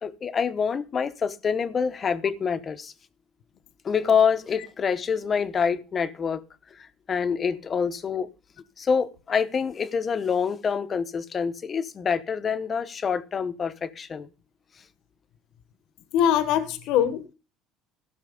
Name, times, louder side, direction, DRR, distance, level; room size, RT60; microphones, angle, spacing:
voice 1, 0.0-2.9 3.8-6.4 6.8-8.3 8.8-14.3, left 6 dB, 25° left, 0.8 m, -26 dB
voice 2, 16.1-17.3, left 10 dB, 65° left, 1.1 m, -22 dB
15.5 x 6.5 x 5.0 m
cardioid pair, 150°, 0 cm